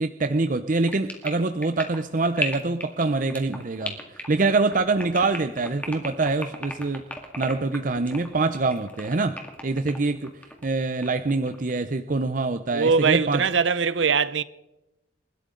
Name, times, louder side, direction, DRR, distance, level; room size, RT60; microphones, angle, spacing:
voice 1, 0.0-7.0 7.4-9.4 9.6-10.3 10.6-13.4, right 3 dB, 45° right, 0.6 m, -25 dB
sound 1, 0.8-10.6 11.0-11.8, left 1 dB, 10° left, 2.1 m, -35 dB
voice 2, 12.7-14.4, right 5 dB, 85° right, 0.7 m, -21 dB
29.0 x 13.0 x 3.8 m
head